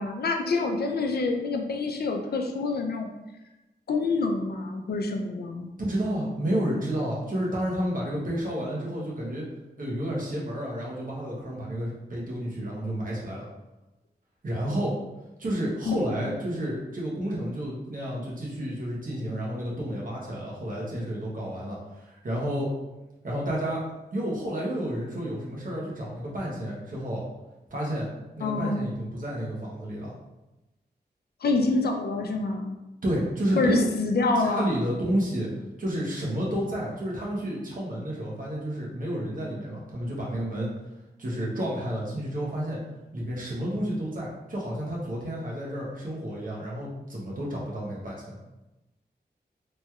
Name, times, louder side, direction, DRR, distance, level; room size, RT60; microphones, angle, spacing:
voice 1, 0.0-3.1 3.9-5.7 15.9-16.0 16.3-16.4 28.4-28.8 31.4-32.8 33.5-34.7, left 3 dB, 65° left, 4 dB, 0.4 m, -26 dB
voice 2, 5.8-9.5 9.8-13.5 14.4-15.0 15.4-22.7 23.2-23.8 24.1-27.2 27.7-28.1 28.4-30.1 33.0-33.9 34.4-35.5 35.8-40.7 41.2-42.8 43.1-48.4, right 1 dB, 50° right, -4 dB, 0.9 m, -30 dB
3.1 x 2.9 x 2.3 m, 1.0 s
wide cardioid pair, 110°, 18 cm